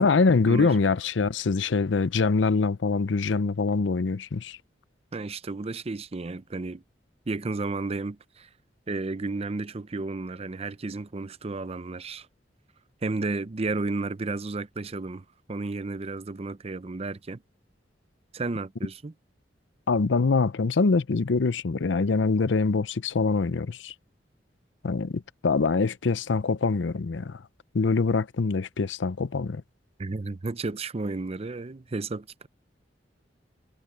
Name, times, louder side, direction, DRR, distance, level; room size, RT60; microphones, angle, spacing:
voice 1, 0.0-4.6 19.9-23.9 24.8-27.4 27.7-29.6, left 4 dB, 80° left, 0.6 m, -24 dB
voice 2, 5.1-6.8 7.3-8.5 8.9-12.3 13.0-17.4 18.3-19.1 30.0-32.5, right 3 dB, 35° right, 0.6 m, -32 dB
head